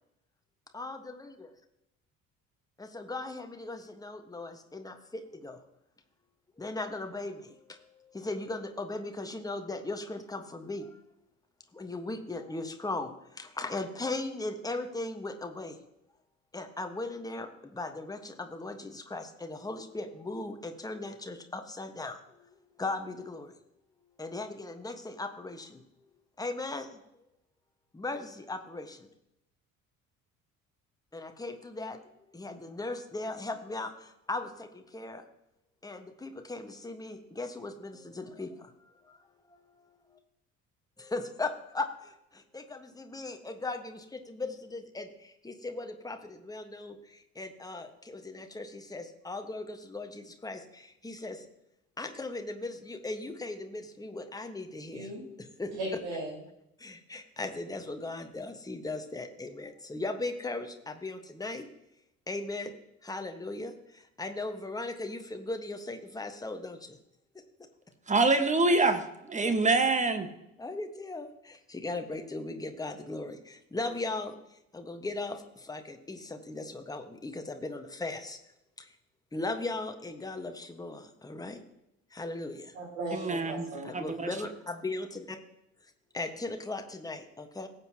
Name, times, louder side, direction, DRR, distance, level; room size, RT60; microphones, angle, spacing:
voice 1, 0.7-1.5 2.8-5.6 6.6-11.0 11.7-15.8 16.5-23.5 24.2-25.8 26.4-27.0 27.9-29.1 31.1-32.0 32.3-35.2 35.8-39.2 39.5-40.2 41.0-51.4 52.0-55.1 55.6-55.7 56.8-61.7 62.3-62.7 63.0-67.0 67.3-67.7 69.4-69.5 70.6-74.4 74.7-78.4 78.8-78.9 79.3-81.6 82.1-82.7 83.8-85.4 86.1-87.7, left 2 dB, 10° left, 5 dB, 1.4 m, -38 dB
voice 2, 55.8-56.4 82.7-83.9, right 1 dB, 65° right, -2 dB, 4.8 m, -37 dB
voice 3, 68.1-70.3 83.1-84.3, right 3 dB, 20° right, 8 dB, 1.4 m, -26 dB
18.0 x 8.1 x 2.9 m, 0.84 s
figure-of-eight pair, 55°, 40 cm